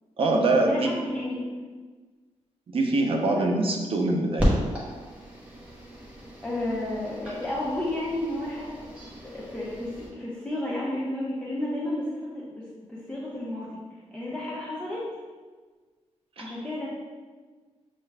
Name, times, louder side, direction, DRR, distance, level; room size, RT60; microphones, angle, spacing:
voice 1, 0.2-0.9 2.7-4.5 16.4-16.5, right 2 dB, 50° right, 1 dB, 0.6 m, -24 dB
voice 2, 0.7-1.5 3.3-3.5 4.0-4.3 6.4-8.8 9.2-13.8 14.1-15.1 16.4-16.9, left 1 dB, 10° left, -8 dB, 0.7 m, -32 dB
sound 1, 4.4-10.1, equal, 10° right, 1.0 m, -33 dB
6.5 x 2.4 x 3.3 m, 1.4 s
wide cardioid pair, 160°, 12 cm